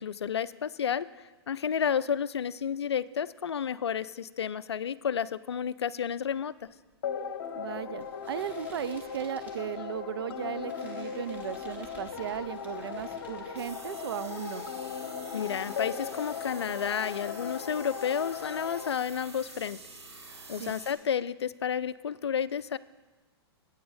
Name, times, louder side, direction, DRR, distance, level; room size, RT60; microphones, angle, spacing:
voice 1, 0.0-6.5 15.3-19.8 20.5-22.8, left 8 dB, 75° left, 17 dB, 0.4 m, -31 dB
sound 1, 6.6-14.3 14.6-15.3, equal, 10° right, 1.9 m, -55 dB
sound 2, 7.0-18.9, left 7 dB, 55° left, 1.0 m, -38 dB
voice 2, 7.5-14.7 20.6-20.8, right 10 dB, 65° right, 14 dB, 0.5 m, -36 dB
sound 3, 13.6-20.9, right 3 dB, 80° right, 1.7 m, -48 dB
9.3 x 8.8 x 5.4 m, 1.2 s
figure-of-eight pair, 110°, 14 cm